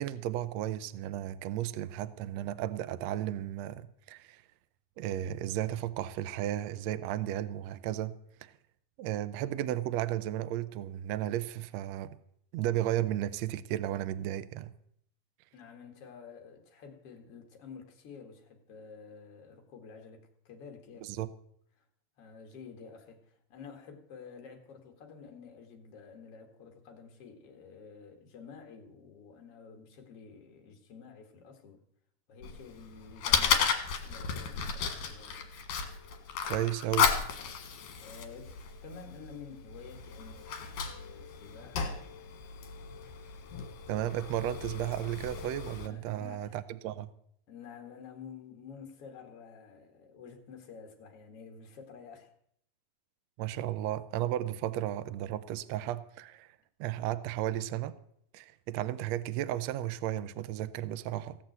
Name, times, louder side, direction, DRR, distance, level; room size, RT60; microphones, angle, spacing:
voice 1, 0.0-4.4 5.0-8.2 8.4-8.5 9.0-12.1 12.5-14.7 21.0-21.3 36.5-37.1 43.9-47.1 53.4-56.5 56.8-57.9 58.3-61.4, right 13 dB, 75° right, 1.6 m, -34 dB
voice 2, 15.5-21.1 22.2-31.8 32.3-33.7 34.0-35.4 38.0-42.0 45.8-46.6 47.5-52.3, left 6 dB, 50° left, 2.8 m, -50 dB
Fire, 32.4-45.9, left 7 dB, 70° left, 3.0 m, -34 dB
16.5 x 7.7 x 8.0 m
omnidirectional pair, 3.8 m